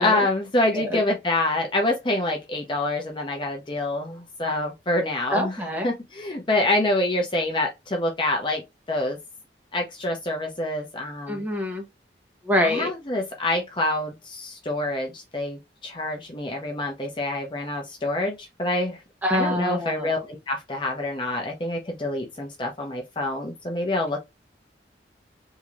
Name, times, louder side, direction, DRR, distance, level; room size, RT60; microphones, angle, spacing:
voice 1, 0.0-5.5 5.8-8.6 8.9-9.2 9.7-11.4 12.6-19.0 19.3-24.2, left 2 dB, 25° left, 0.7 m, -26 dB
voice 2, 5.3-5.9 11.3-11.8 12.4-12.9 19.2-20.1, left 1 dB, 10° right, 1.0 m, -25 dB
3.7 x 2.7 x 3.0 m
head